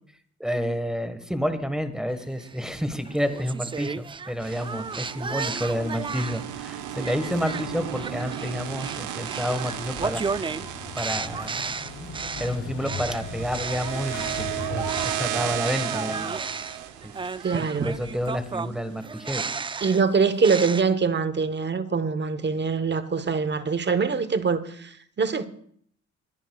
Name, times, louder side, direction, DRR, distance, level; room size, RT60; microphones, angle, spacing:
voice 1, 0.4-10.5 10.9-11.7 12.4-16.3 17.0-17.1 17.8-20.0, equal, ahead, 1.5 m, -30 dB
sound 1, 2.4-6.5 7.0-15.3 15.6-20.8, right 5 dB, 15° right, 0.3 m, -34 dB
sound 2, 4.4-18.6, right 11 dB, 85° right, 0.9 m, -35 dB
Motorcycle / Engine starting, 9.7-15.6, left 5 dB, 90° left, 2.9 m, -39 dB
voice 2, 17.4-18.0 19.8-25.5, right 5 dB, 35° right, 1.1 m, -24 dB
22.0 x 10.0 x 2.4 m
supercardioid pair, 65°, 30 cm